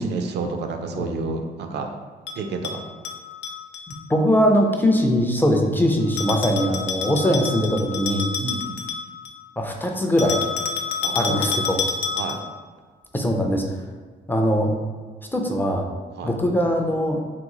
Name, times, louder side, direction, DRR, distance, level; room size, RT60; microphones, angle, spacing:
voice 1, 0.0-1.9 2.4-2.8 8.4-8.8 11.0-11.4 12.2-12.4 16.2-16.3, right 4 dB, 70° right, 5 dB, 0.4 m, -29 dB
Bell, 2.3-4.0 6.2-9.4 10.2-12.6, left 6 dB, 80° left, 0.4 m, -29 dB
voice 2, 4.1-8.3 9.6-10.4 11.1-11.8 13.1-13.6 14.3-14.7 15.3-15.9 16.2-17.2, equal, 10° left, 2 dB, 0.4 m, -21 dB
2.9 x 2.3 x 3.7 m, 1.5 s
cardioid pair, 100°, 18 cm